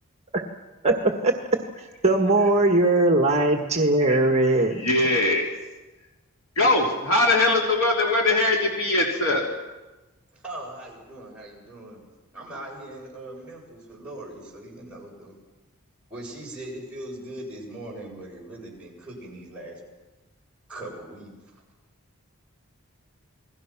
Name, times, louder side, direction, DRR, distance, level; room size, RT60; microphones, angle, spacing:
voice 1, 0.8-1.3 1.8-4.8, right 2 dB, 30° right, 4 dB, 1.6 m, -20 dB
voice 2, 4.7-5.5 6.5-9.5, left 2 dB, 65° left, -1 dB, 3.3 m, -21 dB
voice 3, 10.3-12.0 12.3-15.4 16.1-19.8 20.7-21.6, right 1 dB, 5° right, -5 dB, 7.6 m, -40 dB
28.5 x 21.0 x 6.1 m, 1.1 s
head